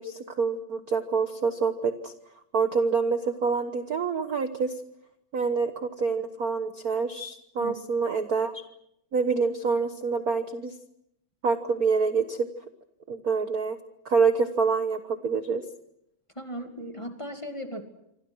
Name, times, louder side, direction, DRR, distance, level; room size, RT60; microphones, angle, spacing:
voice 1, 0.0-2.1 2.5-4.7 5.3-8.6 9.1-10.7 11.4-12.5 13.1-13.8 14.0-15.6, right 5 dB, 55° right, 8 dB, 1.0 m, -26 dB
voice 2, 16.4-17.8, equal, 10° left, 4 dB, 2.1 m, -36 dB
27.5 x 25.5 x 6.3 m, 0.79 s
omnidirectional pair, 3.4 m